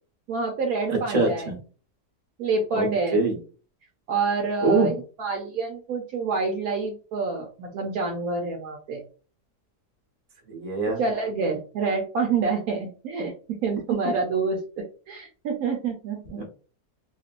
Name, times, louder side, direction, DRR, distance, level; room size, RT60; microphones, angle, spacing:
voice 1, 0.3-1.5 2.4-3.3 4.1-9.0 10.9-13.3 13.6-16.5, right 4 dB, 70° right, 1 dB, 1.0 m, -27 dB
voice 2, 1.1-1.6 2.7-2.9 3.1-3.3 4.6-4.9 10.5-11.0 16.3-16.5, right 3 dB, 30° right, 0 dB, 0.9 m, -23 dB
3.0 x 2.8 x 2.4 m, 0.38 s
omnidirectional pair, 1.8 m